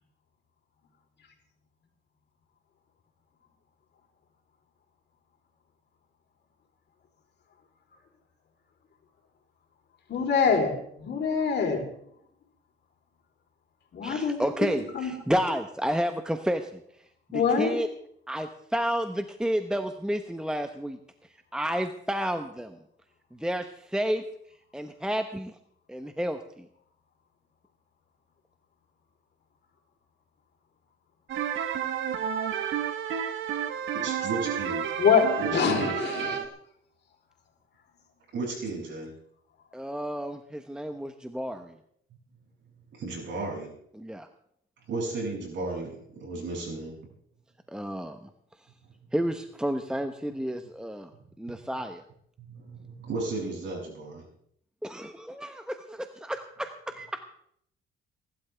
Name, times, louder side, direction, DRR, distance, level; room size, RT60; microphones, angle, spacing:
voice 1, 10.1-11.8 13.9-15.1 15.5-15.6 17.3-17.9 35.0-36.4, left 6 dB, 60° left, 2 dB, 3.7 m, -25 dB
voice 2, 14.0-16.8 17.3-17.9 18.3-21.0 21.5-22.8 23.3-24.2 24.7-25.6 25.9-26.6 39.7-41.7 43.9-44.3 47.7-48.3 49.1-51.1 51.4-52.0 54.8-57.2, equal, 5° right, 7 dB, 0.9 m, -31 dB
sound 1, 31.3-36.5, right 9 dB, 85° right, 1.3 m, -31 dB
voice 3, 33.9-34.8 35.4-35.9 38.3-39.1 42.9-43.7 44.9-47.0 52.4-54.3, right 3 dB, 65° right, -2 dB, 7.3 m, -34 dB
23.5 x 12.0 x 3.5 m, 0.69 s
cardioid pair, 90°, 20 cm